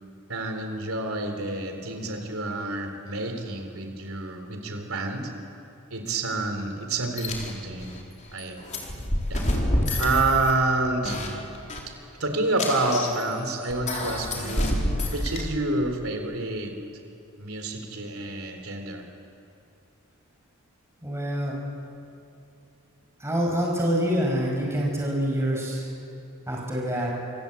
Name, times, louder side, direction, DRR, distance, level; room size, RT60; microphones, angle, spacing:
voice 1, 0.3-5.3 5.9-7.9 8.3-8.6 9.3-9.4 10.0-11.2 12.2-14.8 15.1-16.8 17.4-19.0, right 2 dB, 70° right, 5 dB, 4.0 m, -28 dB
sound 1, 7.2-7.5 7.8-8.0 8.3-10.7 11.0-11.3 11.5-11.8 12.6-13.2 13.6-15.4, left 1 dB, 35° left, 4.1 m, -28 dB
voice 2, 21.0-21.6 23.2-25.9 26.5-27.1, equal, 15° right, -2 dB, 5.7 m, -26 dB
27.0 x 24.5 x 8.5 m, 2.7 s
head